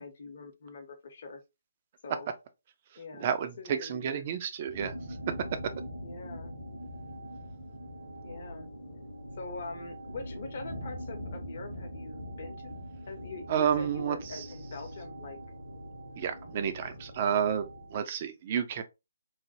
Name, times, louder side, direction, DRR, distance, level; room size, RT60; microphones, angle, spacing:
voice 1, 0.0-1.4 2.0-2.3 3.0-3.3 3.6-4.3 6.0-6.5 8.2-8.7 9.4-12.7 13.1-15.4, left 3 dB, 45° left, 0.8 m, -43 dB
voice 2, 3.2-4.9 13.5-14.4 16.2-18.8, right 8 dB, 30° right, 0.4 m, -30 dB
sound 1, 4.7-18.0, equal, 75° right, 1.5 m, -43 dB
3.2 x 2.2 x 2.6 m
figure-of-eight pair, 140°, 0 cm